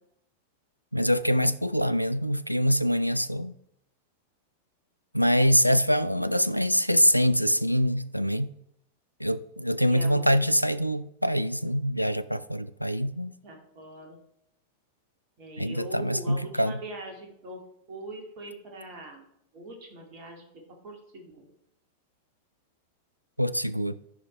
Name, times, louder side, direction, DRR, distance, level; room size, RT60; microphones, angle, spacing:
voice 1, 0.9-3.5 5.1-8.5 9.2-13.3 15.6-16.8 23.4-24.0, equal, 90° left, 0.3 m, -24 dB
voice 2, 9.9-10.2 13.4-14.2 15.4-17.6 17.9-19.2 19.5-20.4 20.8-21.5, right 2 dB, 40° right, 2.3 m, -42 dB
13.5 x 5.1 x 3.2 m
figure-of-eight pair, 90°, 0 cm